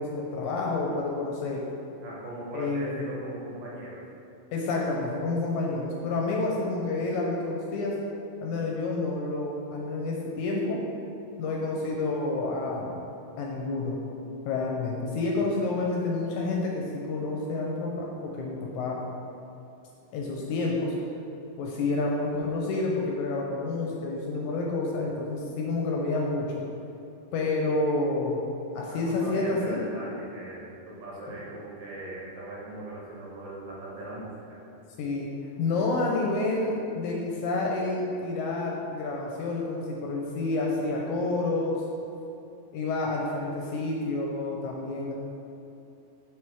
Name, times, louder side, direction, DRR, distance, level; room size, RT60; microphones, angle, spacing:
voice 1, 0.0-1.6 2.5-3.1 4.5-8.0 8.4-10.8 11.4-13.0 13.4-14.0 14.5-19.0 20.1-20.9 21.6-26.6 27.3-28.4 28.8-29.8 31.3-31.4 35.0-35.3 35.6-41.9 42.7-45.1, left 3 dB, 75° left, -1 dB, 1.9 m, -29 dB
voice 2, 2.0-4.0 28.9-34.4, right 1 dB, 65° right, -6 dB, 2.4 m, -39 dB
5.7 x 4.7 x 4.7 m, 2.8 s
omnidirectional pair, 3.8 m